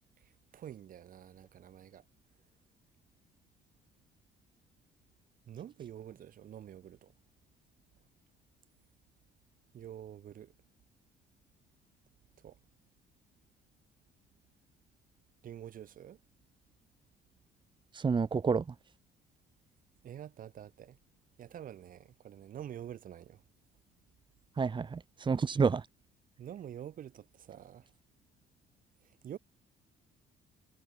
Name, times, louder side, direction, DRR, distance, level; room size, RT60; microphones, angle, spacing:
voice 1, 0.5-2.0 5.5-7.1 9.7-10.5 12.4-12.6 15.4-16.2 20.0-21.0 21.4-23.4 26.4-27.9 29.2-29.4, right 10 dB, 55° right, 3.4 m, -47 dB
voice 2, 17.9-18.8 24.6-25.9, right 5 dB, 30° right, 2.0 m, -29 dB
cardioid pair, 110°, 17 cm